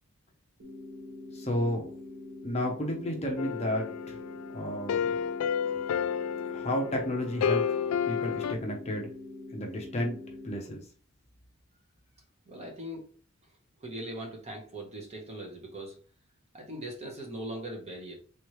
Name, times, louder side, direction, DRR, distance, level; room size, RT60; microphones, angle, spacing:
sound 1, 0.6-10.6, left 2 dB, 50° right, 1.1 m, -44 dB
voice 1, 1.3-1.9 2.4-4.2 4.5-5.2 6.5-7.8 8.1-9.1 9.5-10.8, left 1 dB, 30° left, 1 dB, 0.8 m, -32 dB
sound 2, 3.4-8.5, left 7 dB, 80° left, 0.3 m, -31 dB
voice 2, 12.5-13.1 13.8-16.0 16.5-18.1, right 1 dB, 30° right, 1 dB, 1.1 m, -40 dB
3.5 x 3.1 x 3.1 m, 0.40 s
head